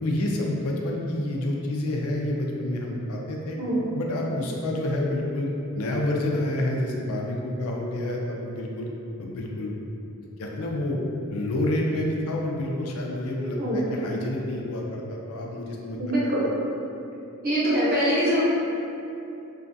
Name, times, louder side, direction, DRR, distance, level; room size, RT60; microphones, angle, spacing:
voice 1, 0.0-3.6 3.9-5.5 5.7-8.9 9.2-9.8 10.4-11.0 11.3-16.3, left 1 dB, 85° left, -1 dB, 0.4 m, -28 dB
voice 2, 16.0-16.4 17.4-18.4, equal, 45° right, -8 dB, 0.8 m, -23 dB
3.1 x 2.3 x 2.6 m, 2.7 s
head